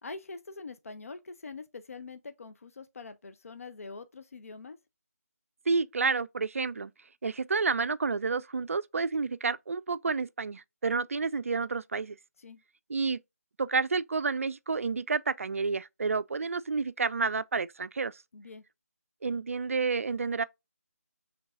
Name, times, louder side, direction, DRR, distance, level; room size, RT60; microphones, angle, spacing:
voice 1, 0.0-4.8 12.4-12.6 18.3-18.6, left 4 dB, 60° left, 0.5 m, -44 dB
voice 2, 5.7-6.9 7.2-12.2 12.9-13.2 13.6-18.2 19.2-20.4, right 4 dB, 55° right, 0.3 m, -30 dB
5.3 x 3.3 x 2.3 m
figure-of-eight pair, 160°, 9 cm